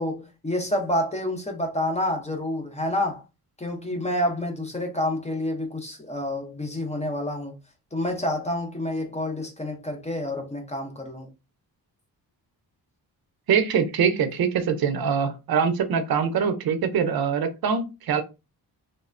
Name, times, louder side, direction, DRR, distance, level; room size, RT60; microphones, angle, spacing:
voice 1, 0.0-3.2 3.6-7.5 7.9-11.3, left 1 dB, 15° left, 0.6 m, -28 dB
voice 2, 13.5-18.2, right 6 dB, 65° right, 0.6 m, -23 dB
3.2 x 2.0 x 2.4 m
wide cardioid pair, 155°, 39 cm